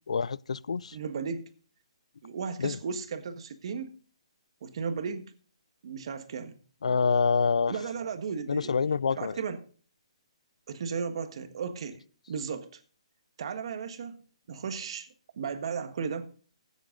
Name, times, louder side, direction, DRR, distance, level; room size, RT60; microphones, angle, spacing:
voice 1, 0.1-1.0 2.6-2.8 6.8-7.8 8.5-9.4, left 5 dB, 85° left, 0.4 m, -26 dB
voice 2, 0.9-1.5 2.2-3.9 4.6-5.2 5.8-6.6 7.7-8.7 9.1-9.6 10.7-12.0 12.3-12.7 13.4-14.2 14.5-15.1 15.4-16.3, right 6 dB, 55° right, 1.5 m, -35 dB
16.0 x 8.2 x 3.8 m
hypercardioid pair, 155°, 3 cm